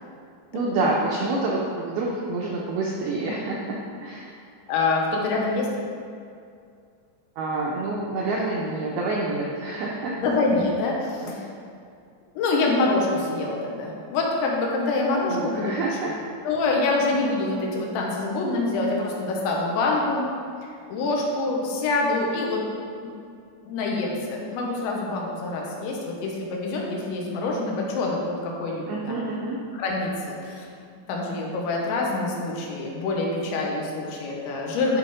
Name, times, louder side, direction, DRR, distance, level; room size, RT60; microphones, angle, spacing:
voice 1, 0.5-4.4 7.4-10.1 11.2-11.4 15.3-16.1 28.9-29.6, right 2 dB, 90° right, -3 dB, 2.2 m, -27 dB
voice 2, 4.7-5.7 10.2-11.4 12.4-15.7 16.0-16.1 16.4-20.3 20.9-22.6 23.7-28.2 28.4-29.2 29.8-30.7 31.1-35.0, left 3 dB, 75° left, -2 dB, 3.3 m, -25 dB
11.5 x 4.9 x 4.9 m, 2.3 s
omnidirectional pair, 5.5 m